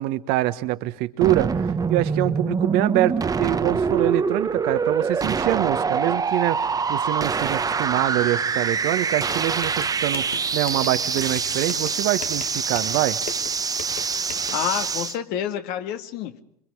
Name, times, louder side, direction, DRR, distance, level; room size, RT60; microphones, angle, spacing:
voice 1, 0.0-13.2, right 16 dB, 55° right, 1.4 m, -25 dB
sound 1, 1.2-15.2, right 5 dB, 20° right, 1.2 m, -25 dB
sound 2, 9.3-14.5, left 8 dB, 75° left, 1.9 m, -40 dB
voice 2, 14.5-16.4, left 10 dB, 55° left, 1.9 m, -28 dB
26.5 x 24.0 x 4.8 m
hypercardioid pair, 90°, 20 cm